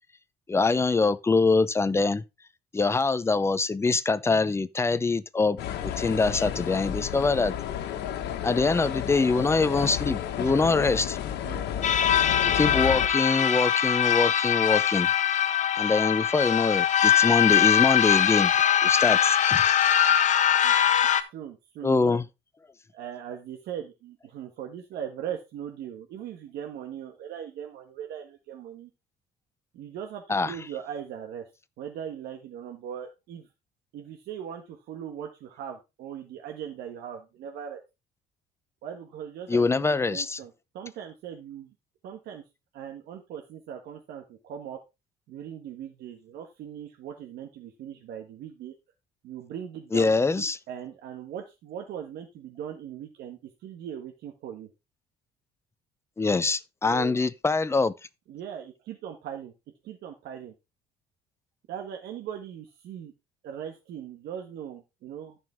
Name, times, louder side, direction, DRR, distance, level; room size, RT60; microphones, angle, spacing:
voice 1, 0.5-2.2 2.7-7.5 8.4-11.2 12.4-15.1 15.7-18.5 18.8-19.8 21.8-22.2 30.3-30.5 39.5-40.4 49.9-50.6 56.2-57.9, left 3 dB, 15° left, 0.6 m, -24 dB
sound 1, 5.6-13.1, left 10 dB, 80° left, 1.5 m, -32 dB
sound 2, 11.8-21.2, left 10 dB, 45° left, 1.1 m, -22 dB
voice 2, 21.1-22.2 22.9-28.9 29.7-31.4 31.8-33.5 33.9-37.8 38.8-41.7 42.0-42.4 42.7-44.8 45.3-48.7 49.2-54.7 56.9-57.2 58.3-59.5 59.8-60.5 61.7-63.1 63.4-65.4, right 9 dB, 75° right, 1.6 m, -39 dB
14.0 x 5.4 x 3.5 m
cardioid pair, 110°, 17 cm